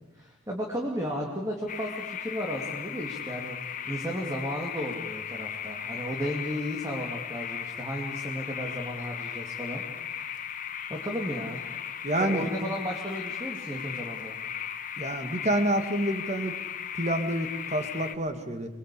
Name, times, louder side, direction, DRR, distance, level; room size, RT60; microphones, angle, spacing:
voice 1, 0.1-9.8 10.1-10.4 10.9-11.6 12.2-14.4, equal, 15° right, 0 dB, 2.7 m, -34 dB
sound 1, 1.7-18.2, left 8 dB, 40° left, 1.4 m, -37 dB
voice 2, 12.0-12.5 15.0-16.5 16.9-18.7, right 1 dB, 35° right, 7 dB, 2.3 m, -28 dB
28.0 x 21.0 x 8.6 m, 1.1 s
head